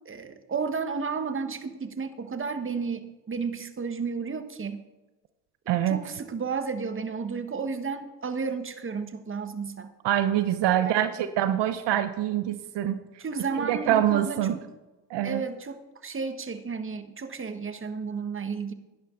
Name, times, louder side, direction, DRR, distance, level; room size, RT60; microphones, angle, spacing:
voice 1, 0.0-4.8 5.8-9.9 10.8-10.9 13.2-14.6 15.2-18.7, right 5 dB, 30° right, 9 dB, 1.4 m, -32 dB
voice 2, 5.7-6.0 10.0-13.0 13.6-14.5 15.1-15.4, right 11 dB, 70° right, 11 dB, 0.9 m, -25 dB
17.5 x 10.5 x 3.9 m, 1.1 s
supercardioid pair, 70°, 43 cm